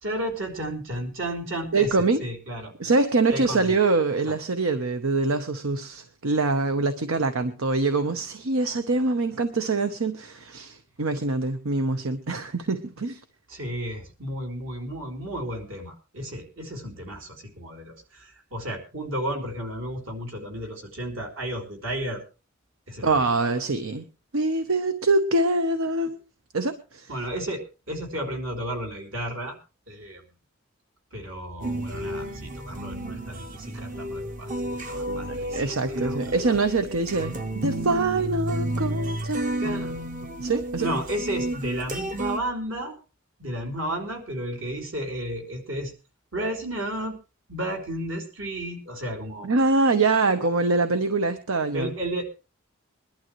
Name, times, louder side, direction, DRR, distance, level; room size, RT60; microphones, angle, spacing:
voice 1, 0.0-2.7 3.3-3.8 4.3-4.4 13.5-22.2 22.9-23.7 27.1-29.6 29.9-30.2 31.1-36.6 39.6-39.9 40.8-43.0 43.4-45.9 46.3-47.2 47.5-49.6 51.7-52.3, right 1 dB, 70° right, 2 dB, 3.7 m, -33 dB
voice 2, 1.7-2.2 2.8-13.2 23.0-24.0 24.3-26.2 26.5-27.1 35.3-39.6 40.4-40.9 49.4-51.9, right 3 dB, 85° right, 9 dB, 0.9 m, -24 dB
sound 1, 31.6-42.4, right 1 dB, 40° right, 0.9 m, -32 dB
22.0 x 12.0 x 3.1 m, 0.32 s
head